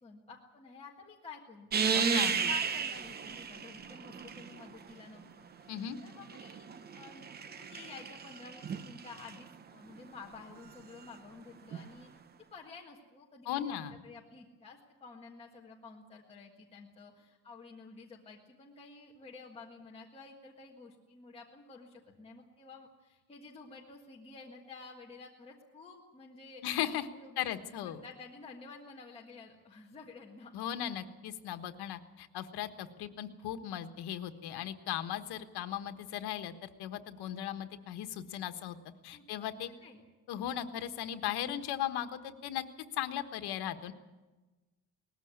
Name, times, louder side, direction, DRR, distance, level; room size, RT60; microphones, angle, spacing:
voice 1, 0.0-5.7 6.0-6.7 6.9-12.1 12.5-13.8 14.0-26.6 27.1-30.5 39.1-39.5 39.7-40.0, left 4 dB, 15° left, -3 dB, 1.6 m, -51 dB
sound 1, 1.7-4.8 5.9-9.4 11.7-11.8, right 6 dB, 25° right, 0.7 m, -34 dB
voice 2, 1.9-2.4 5.7-6.0 13.4-13.9 26.6-27.1 27.4-28.0 30.5-38.8 39.0-39.7 40.3-42.6 42.9-43.9, left 11 dB, 85° left, 8 dB, 1.4 m, -37 dB
19.5 x 14.5 x 9.6 m, 1.2 s
cardioid pair, 175°, 38 cm